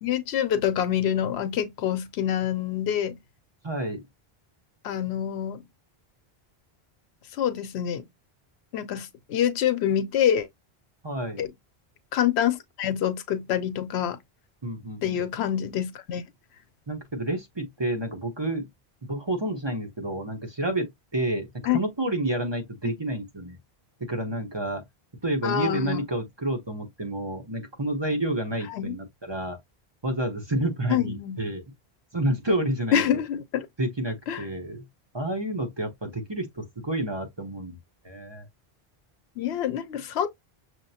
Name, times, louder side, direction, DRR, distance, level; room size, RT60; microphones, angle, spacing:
voice 1, 0.0-3.2 4.8-5.6 7.4-8.1 8.7-10.5 11.4-11.5 12.1-14.2 15.0-16.2 21.7-21.8 22.8-23.0 25.4-26.0 28.7-29.0 30.9-31.4 32.9-33.7 34.3-34.4 39.4-40.3, left 10 dB, 90° left, 0.9 m, -26 dB
voice 2, 3.6-4.0 11.0-11.5 14.6-15.2 16.9-18.7 19.0-20.9 21.1-23.6 24.0-24.8 25.2-29.6 30.0-31.6 32.1-33.2 33.8-34.8 35.1-37.8 38.0-38.5, right 1 dB, 25° right, 1.0 m, -29 dB
6.3 x 2.1 x 2.7 m
omnidirectional pair, 1.1 m